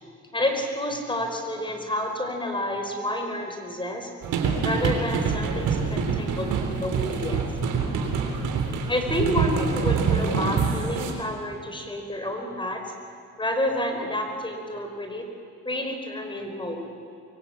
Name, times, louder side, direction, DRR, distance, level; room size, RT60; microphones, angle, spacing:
voice 1, 0.3-4.1 4.6-7.5 8.9-12.8 13.4-15.3 15.6-16.9, left 1 dB, 15° left, 4 dB, 4.9 m, -29 dB
Drums Venice beach, 4.2-11.1, right 5 dB, 85° right, 3.9 m, -26 dB
24.0 x 24.0 x 8.9 m, 2.5 s
cardioid pair, 90°, 30 cm